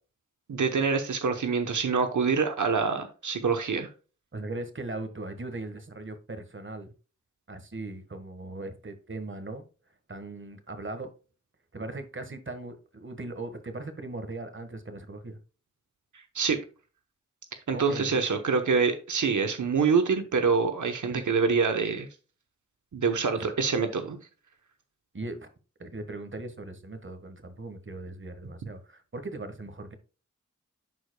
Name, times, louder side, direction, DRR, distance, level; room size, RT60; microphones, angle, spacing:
voice 1, 0.5-3.9 16.1-16.6 17.7-22.1 22.9-24.2, right 5 dB, 90° right, 7 dB, 0.9 m, -26 dB
voice 2, 4.3-6.9 7.5-9.6 10.1-11.1 11.7-15.4 17.7-18.2 21.1-21.3 23.3-23.4 25.1-25.5 25.8-29.9, right 2 dB, 40° right, 8 dB, 1.4 m, -39 dB
11.0 x 4.9 x 2.2 m, 0.34 s
wide cardioid pair, 55°, 30 cm